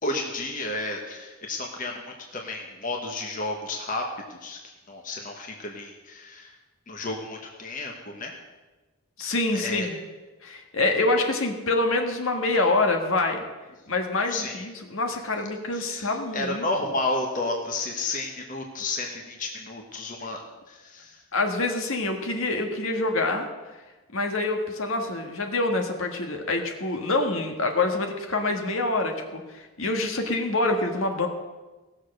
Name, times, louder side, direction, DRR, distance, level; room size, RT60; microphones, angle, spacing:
voice 1, 0.0-4.6 4.9-6.5 6.9-8.3 9.5-9.9 14.3-14.6 15.7-21.2, left 2 dB, 35° left, 1 dB, 1.3 m, -32 dB
voice 2, 9.2-10.0 10.4-13.4 13.9-16.7 21.3-23.5 24.1-31.3, left 2 dB, 65° left, 4 dB, 1.6 m, -26 dB
17.5 x 6.6 x 6.5 m, 1.2 s
head